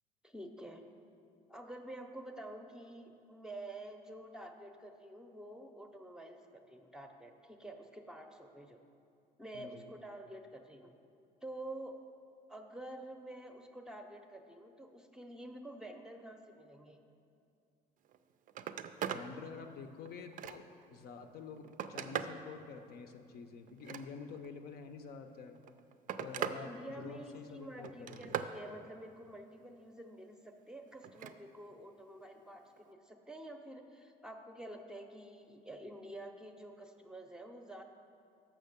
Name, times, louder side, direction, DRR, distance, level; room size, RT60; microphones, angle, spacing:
voice 1, 0.2-0.8 1.5-8.8 9.4-10.9 11.4-12.0 12.5-17.0 26.4-37.8, right 1 dB, 5° right, 4 dB, 0.6 m, -49 dB
voice 2, 9.5-9.9 19.0-25.6 26.2-28.4, left 5 dB, 65° left, 7 dB, 0.6 m, -48 dB
Telephone, 18.0-18.2 18.5-19.3 19.8-20.8 21.4-22.4 23.7-24.5 25.5-26.6 27.0-27.4 27.8-28.6 31.0-31.4 32.8-32.9, right 9 dB, 50° right, 0.4 m, -40 dB
6.4 x 6.0 x 6.6 m, 2.5 s
cardioid pair, 110°, 17 cm